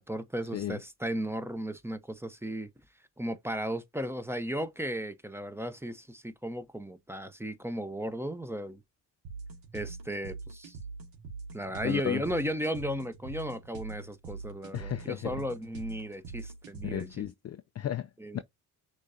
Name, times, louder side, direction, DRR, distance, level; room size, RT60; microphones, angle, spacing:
voice 1, 0.0-2.7 3.2-8.8 9.7-10.8 11.5-17.3 18.2-18.4, equal, 5° right, 0.8 m, -35 dB
sound 1, 9.2-17.2, right 4 dB, 70° right, 2.0 m, -43 dB
voice 2, 11.8-12.2 14.7-15.4 16.8-18.1 18.3-18.4, left 11 dB, 35° left, 0.5 m, -34 dB
6.3 x 3.1 x 2.7 m
hypercardioid pair, 55°, 46 cm